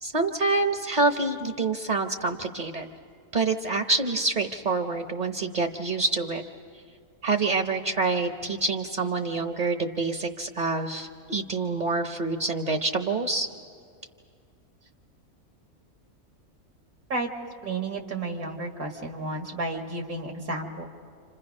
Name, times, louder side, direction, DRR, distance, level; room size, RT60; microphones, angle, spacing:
voice 1, 0.0-2.9 3.3-6.4 7.2-13.5, right 3 dB, 35° right, 6 dB, 0.9 m, -26 dB
voice 2, 17.6-20.9, right 2 dB, 80° right, 2 dB, 2.5 m, -32 dB
29.5 x 27.0 x 5.4 m, 2.3 s
omnidirectional pair, 1.5 m